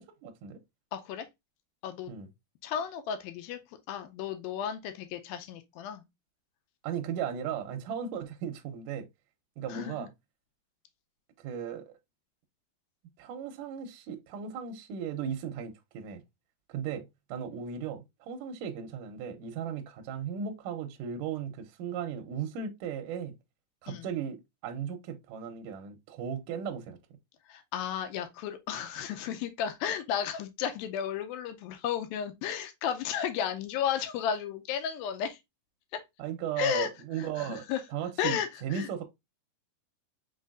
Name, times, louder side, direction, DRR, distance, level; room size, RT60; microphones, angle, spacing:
voice 1, 0.2-0.6 2.1-2.3 6.8-9.1 9.6-10.1 11.4-12.0 13.2-16.2 16.7-23.3 23.8-24.4 24.6-27.0 36.2-37.6 37.9-39.0, right 8 dB, 80° right, 2.0 m, -36 dB
voice 2, 0.9-1.3 1.8-2.1 2.6-3.6 3.9-6.0 9.7-10.1 23.9-24.1 27.5-35.4 35.9-36.0 36.6-36.9 37.2-37.8 38.2-38.9, left 9 dB, 80° left, 2.3 m, -33 dB
5.4 x 4.0 x 2.4 m
omnidirectional pair, 4.4 m